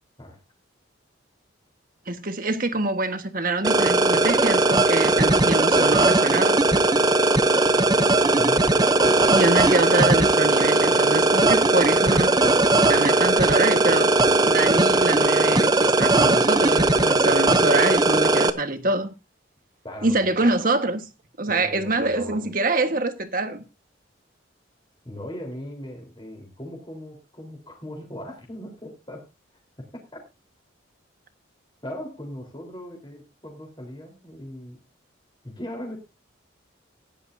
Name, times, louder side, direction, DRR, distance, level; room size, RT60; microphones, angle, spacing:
voice 1, 2.1-6.7 9.3-12.4 12.8-14.1 14.4-19.1 20.0-21.1 21.4-23.6, right 2 dB, 45° right, 1.5 m, -25 dB
sound 1, 3.6-18.5, right 2 dB, 20° right, 0.7 m, -19 dB
voice 2, 19.8-20.4 21.5-22.5 25.0-29.3 29.8-30.2 31.8-34.8 35.4-36.0, left 1 dB, 25° left, 4.0 m, -38 dB
17.0 x 11.0 x 2.7 m
head